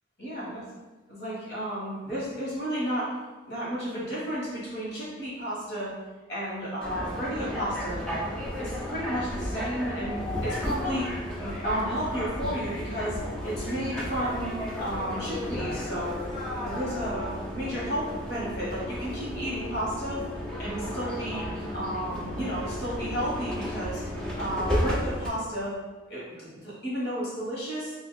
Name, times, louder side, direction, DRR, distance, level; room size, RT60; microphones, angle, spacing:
voice 1, 0.2-0.6 1.1-3.1 3.5-5.9 6.3-8.1 8.6-11.1 11.4-16.2 16.6-20.3 20.6-21.4 21.7-24.0 24.3-25.8 26.1-27.9, equal, 55° left, -7 dB, 1.5 m, -32 dB
sound 1, 6.8-25.3, left 1 dB, 5° left, 0.4 m, -33 dB
2.9 x 2.7 x 4.0 m, 1.2 s
head